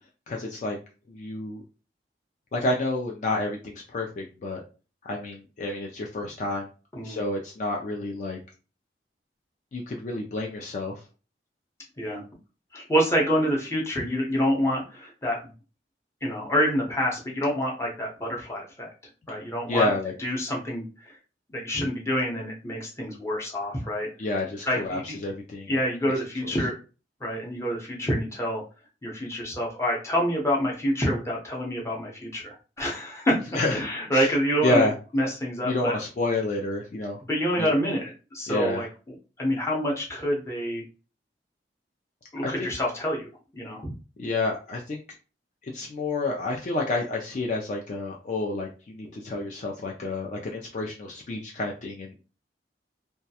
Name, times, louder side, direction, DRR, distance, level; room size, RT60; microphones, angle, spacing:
voice 1, 0.3-0.8 1.1-1.6 2.5-4.6 5.0-6.7 7.0-8.4 9.7-11.0 19.7-20.1 24.2-25.8 33.5-33.8 34.1-34.3 34.6-34.9 35.6-37.2 37.6-37.7 38.5-38.9 42.4-42.7 44.2-45.0 45.6-52.2, left 2 dB, 45° left, -1 dB, 0.3 m, -29 dB
voice 2, 12.7-15.5 16.2-18.9 19.3-19.9 20.2-20.8 21.5-24.1 24.7-25.2 25.7-26.7 27.2-28.6 29.0-33.4 33.7-36.0 37.3-38.9 39.4-40.8 42.3-43.3 43.5-43.9, equal, 15° left, -2 dB, 0.7 m, -27 dB
2.3 x 2.1 x 2.7 m, 0.34 s
head